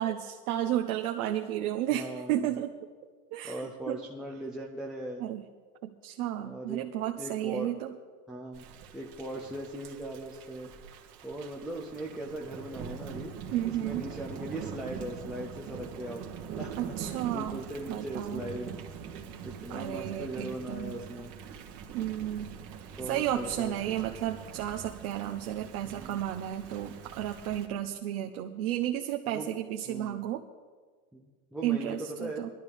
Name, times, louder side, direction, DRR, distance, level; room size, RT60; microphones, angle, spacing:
voice 1, 0.0-2.7 3.3-4.0 5.2-5.4 5.8-7.9 13.5-14.0 16.8-17.6 17.9-18.4 19.7-20.9 21.9-22.5 22.8-30.4 31.6-32.5, right 12 dB, 65° right, 3 dB, 1.0 m, -32 dB
voice 2, 1.9-2.5 3.4-5.3 6.4-6.8 7.2-7.7 8.3-8.6 8.9-10.7 11.2-13.3 13.7-16.3 16.6-18.7 19.4-21.3 23.0-23.9 25.8-26.2 29.3-29.5 29.9-30.2 31.1-32.4, right 1 dB, ahead, -4 dB, 0.3 m, -39 dB
Thunder / Rain, 8.5-27.7, right 7 dB, 50° right, 1.7 m, -43 dB
20.0 x 12.0 x 3.5 m, 1.5 s
supercardioid pair, 135°, 46 cm